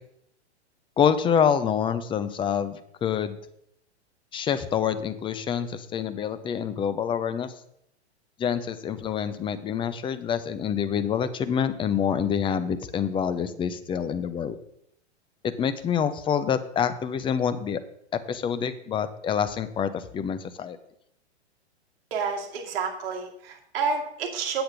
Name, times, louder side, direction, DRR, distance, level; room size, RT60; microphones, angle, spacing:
voice 1, 1.0-3.4 4.3-7.5 8.4-14.6 15.4-17.8 18.1-20.8, left 8 dB, 15° left, 10 dB, 0.6 m, -26 dB
voice 2, 22.1-24.6, right 5 dB, 60° right, 2 dB, 2.3 m, -29 dB
8.7 x 7.8 x 5.1 m, 0.72 s
hypercardioid pair, 115°, 34 cm